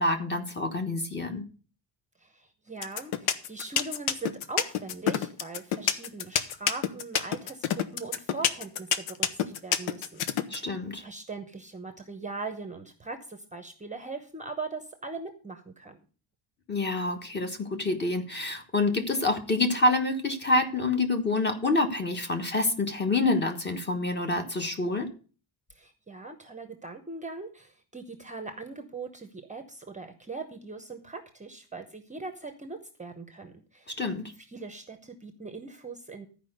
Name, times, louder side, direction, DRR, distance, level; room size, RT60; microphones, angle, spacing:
voice 1, 0.0-1.4 10.5-11.0 16.7-25.1 34.0-34.2, left 2 dB, 20° left, 5 dB, 1.3 m, -27 dB
voice 2, 2.2-10.3 10.5-16.0 25.7-34.0 34.4-36.3, right 3 dB, 15° right, 7 dB, 0.8 m, -40 dB
sound 1, 2.8-10.6, left 9 dB, 80° left, 1.1 m, -26 dB
13.0 x 5.0 x 6.6 m, 0.38 s
cardioid pair, 165°, 49 cm